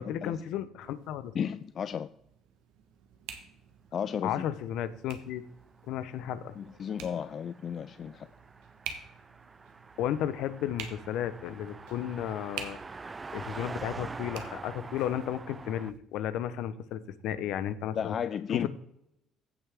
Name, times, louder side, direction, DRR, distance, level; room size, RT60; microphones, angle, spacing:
voice 1, 0.0-1.3 4.2-5.4 5.9-6.6 10.0-12.8 13.3-18.1 18.5-18.7, left 10 dB, 75° left, 14 dB, 0.8 m, -33 dB
sound 1, 0.8-16.0, right 8 dB, 80° right, 1.2 m, -49 dB
voice 2, 1.3-2.1 3.9-4.4 6.6-8.3 17.9-18.7, left 8 dB, 50° left, 12 dB, 0.4 m, -33 dB
Car passing by, 5.8-15.9, right 4 dB, 30° right, 0.4 m, -45 dB
15.5 x 5.6 x 3.6 m, 0.80 s
hypercardioid pair, 60°, 0 cm